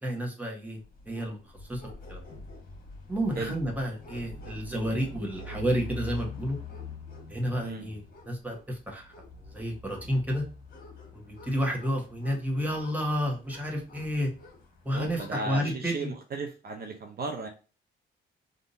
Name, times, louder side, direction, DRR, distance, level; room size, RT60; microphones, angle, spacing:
voice 1, 0.0-0.8 1.1-1.4 1.7-1.8 2.1-2.2 3.1-6.6 7.3-9.1 9.5-10.4 11.1-14.3 14.8-16.1, equal, 10° right, -1 dB, 1.3 m, -30 dB
sound 1, 0.8-15.4, left 2 dB, 50° left, 1.5 m, -45 dB
voice 2, 7.6-7.9 14.9-17.5, right 3 dB, 50° right, 3 dB, 0.6 m, -35 dB
3.6 x 2.6 x 2.6 m, 0.33 s
cardioid pair, 90°, 20 cm